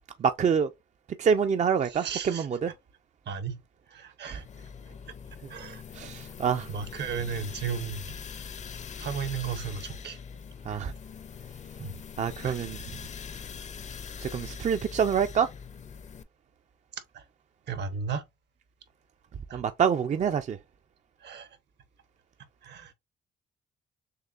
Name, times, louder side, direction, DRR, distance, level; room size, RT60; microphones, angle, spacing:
voice 1, 0.2-0.7 1.2-2.7 4.3-4.4 5.9-6.7 10.7-10.9 12.2-12.8 14.2-15.5 19.5-20.6, right 7 dB, 35° right, 0.4 m, -26 dB
voice 2, 1.8-2.5 3.3-3.6 3.9-4.4 5.5-6.1 6.7-8.2 9.0-10.2 10.7-10.8 11.8-11.9 12.4-12.6 17.1-17.3 17.7-18.2 19.5-19.6 21.2-21.5 22.6-22.9, right 6 dB, 60° right, 0.9 m, -35 dB
sound 1, 4.3-16.2, left 6 dB, 35° left, 0.5 m, -42 dB
6.5 x 2.2 x 2.4 m
cardioid pair, 90°, 20 cm